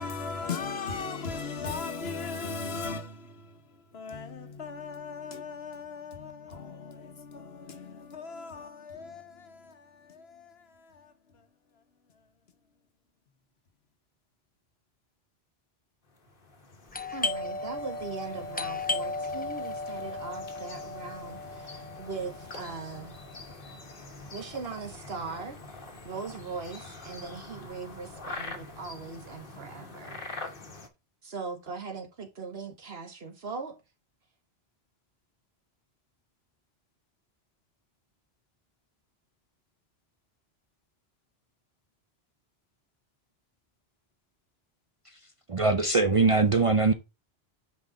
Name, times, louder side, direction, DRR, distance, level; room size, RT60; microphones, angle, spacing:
voice 1, 0.0-11.5 11.7-11.8 12.1-12.2, left 4 dB, 70° left, 1.3 m, -38 dB
sound 1, 16.1-30.9, left 3 dB, 55° left, 1.5 m, -45 dB
Doorbell, 16.9-26.3 26.5-26.6 27.3-27.6 27.9-29.3, left 3 dB, 15° left, 0.4 m, -36 dB
voice 2, 17.1-23.2 24.3-25.6 26.0-30.2 31.2-33.8, right 4 dB, 70° right, 1.7 m, -40 dB
voice 3, 45.5-46.9, right 3 dB, 35° right, 0.6 m, -22 dB
6.3 x 5.4 x 4.1 m
omnidirectional pair, 1.1 m